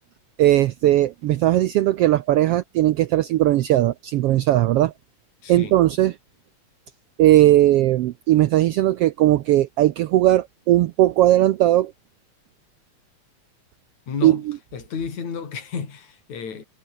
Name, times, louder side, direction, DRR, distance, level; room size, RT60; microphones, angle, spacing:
voice 1, 0.4-4.9 5.5-6.1 7.2-11.9 14.2-14.4, right 14 dB, 85° right, 1.3 m, -18 dB
voice 2, 5.4-5.8 14.1-14.4 14.7-16.6, left 6 dB, 65° left, 5.1 m, -32 dB
omnidirectional pair, 3.5 m